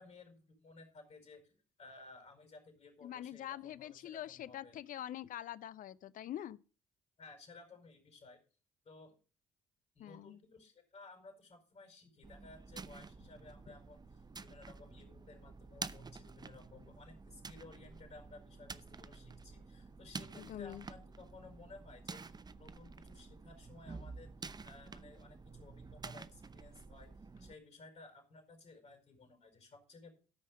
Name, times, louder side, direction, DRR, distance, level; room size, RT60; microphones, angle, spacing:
voice 1, 0.0-1.5 1.8-4.8 7.2-8.4 8.8-9.1 9.9-27.1 27.4-30.1, left 3 dB, 40° left, 4.8 m, -57 dB
voice 2, 3.0-6.6 10.0-10.4 13.7-13.8 20.4-20.9, left 11 dB, 60° left, 0.6 m, -45 dB
sound 1, 12.2-27.5, right 4 dB, 25° right, 0.7 m, -50 dB
13.0 x 5.6 x 6.5 m
hypercardioid pair, 50°, 16 cm